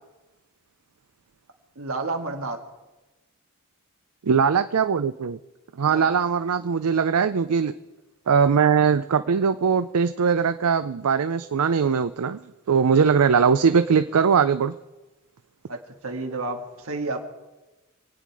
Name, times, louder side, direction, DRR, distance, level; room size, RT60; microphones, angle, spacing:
voice 1, 1.8-2.6 5.8-6.1 6.6-6.7 15.7-17.2, right 3 dB, 70° right, 4 dB, 2.0 m, -31 dB
voice 2, 4.2-5.4 5.8-7.7 8.3-12.4 12.7-14.7, right 6 dB, 85° right, 12 dB, 0.5 m, -20 dB
26.5 x 9.3 x 4.8 m, 1.1 s
head